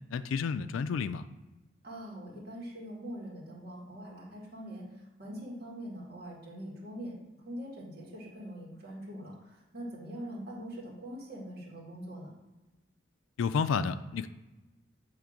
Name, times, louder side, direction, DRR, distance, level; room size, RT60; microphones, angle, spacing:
voice 1, 0.1-1.3 13.4-14.3, left 5 dB, 85° left, 13 dB, 0.4 m, -30 dB
voice 2, 1.8-12.3, equal, 50° right, -4 dB, 1.9 m, -43 dB
7.3 x 3.3 x 5.0 m, 1.1 s
head